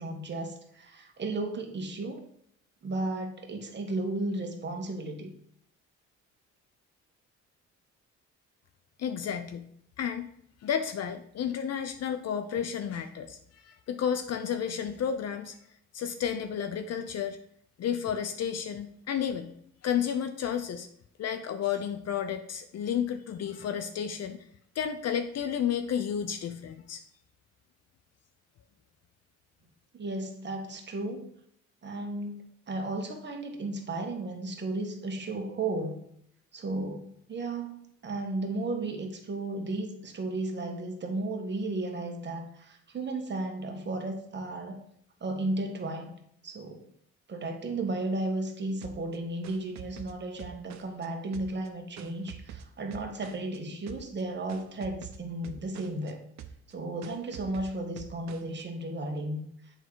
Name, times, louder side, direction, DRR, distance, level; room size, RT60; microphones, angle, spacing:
voice 1, 0.0-2.2 2.8-5.3 29.9-31.3 31.8-36.0 36.5-44.8 45.2-46.1 46.4-46.9 47.3-56.2 56.7-59.7, right 2 dB, 35° right, 3 dB, 1.4 m, -34 dB
voice 2, 9.0-9.7 10.0-10.3 10.6-15.6 15.9-17.4 17.8-19.5 19.8-20.9 21.2-24.4 24.7-27.0, left 8 dB, 55° left, 7 dB, 0.6 m, -32 dB
sound 1, 48.8-51.1 51.3-53.6 53.9-54.2 54.5-56.1 56.4-56.7 57.0-58.6, right 9 dB, 65° right, 0.7 m, -46 dB
8.0 x 3.8 x 4.6 m, 0.69 s
cardioid pair, 90°, 30 cm